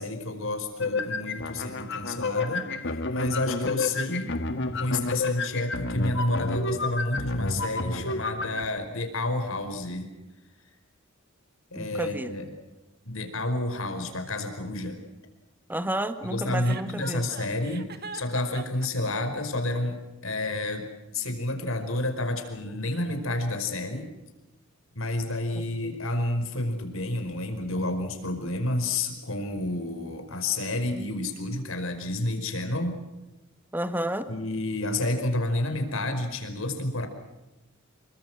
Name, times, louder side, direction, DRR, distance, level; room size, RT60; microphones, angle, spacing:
voice 1, 0.0-4.3 4.7-10.1 11.7-12.5 13.1-15.0 16.2-20.0 20.2-20.9 21.1-24.1 25.0-33.0 34.3-37.1, left 2 dB, 75° left, 7 dB, 5.2 m, -30 dB
sound 1, 0.8-8.6, left 3 dB, 60° left, 1.8 m, -30 dB
voice 2, 11.8-12.3 15.7-17.2 25.6-26.0 33.7-34.3, right 1 dB, 10° right, 10 dB, 1.7 m, -31 dB
Chuckle chortle, 16.6-18.9, right 4 dB, 50° right, 2.0 m, -40 dB
28.0 x 24.0 x 6.2 m, 1.0 s
head